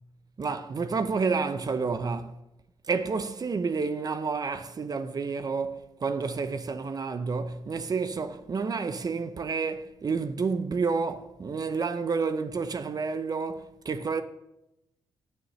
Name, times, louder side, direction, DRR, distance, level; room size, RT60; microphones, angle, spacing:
voice 1, 0.4-2.4 2.9-14.2, right 4 dB, 45° right, 0.7 m, -30 dB
16.0 x 6.3 x 3.2 m
cardioid pair, 65°, 9 cm